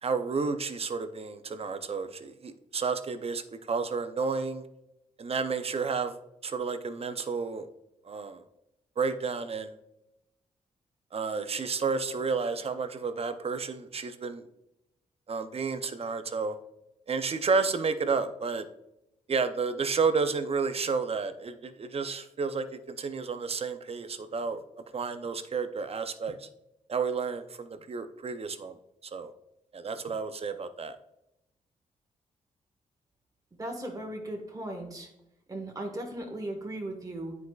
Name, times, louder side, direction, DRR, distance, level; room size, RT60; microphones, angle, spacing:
voice 1, 0.0-4.6 5.2-6.1 6.4-7.7 8.0-8.4 9.0-9.8 11.1-14.4 15.3-16.6 17.1-18.7 19.3-24.6 24.9-26.5 26.9-28.8 29.1-29.3 29.7-31.0, right 5 dB, 45° right, 10 dB, 0.6 m, -31 dB
voice 2, 33.6-35.1 35.5-37.3, right 1 dB, 25° right, 1 dB, 1.4 m, -37 dB
9.3 x 4.7 x 2.4 m, 0.87 s
cardioid pair, 60°, 14 cm